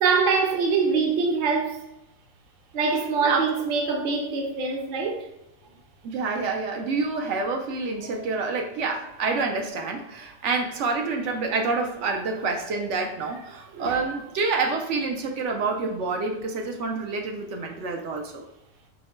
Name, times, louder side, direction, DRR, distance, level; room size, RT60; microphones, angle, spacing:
voice 1, 0.0-1.8 2.7-5.3 8.0-8.3 13.7-14.0, right 4 dB, 50° right, 0.8 m, -24 dB
voice 2, 6.0-18.5, right 4 dB, 75° right, 0.9 m, -28 dB
4.4 x 2.2 x 4.2 m
omnidirectional pair, 1.3 m